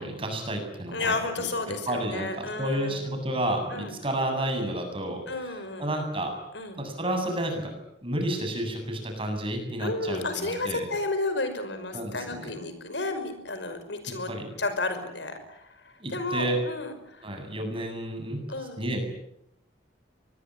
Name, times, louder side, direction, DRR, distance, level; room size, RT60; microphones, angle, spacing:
voice 1, 0.0-1.5 1.9-6.3 6.7-10.9 11.9-12.5 14.3-14.5 16.0-16.6 17.2-18.4 18.8-19.0, right 1 dB, 30° right, 4 dB, 8.0 m, -31 dB
voice 2, 0.9-3.0 3.7-3.9 5.3-5.9 6.5-6.8 9.8-14.3 14.6-17.3 18.5-18.8, left 2 dB, 75° left, 9 dB, 5.7 m, -32 dB
24.5 x 21.5 x 9.9 m, 0.79 s
head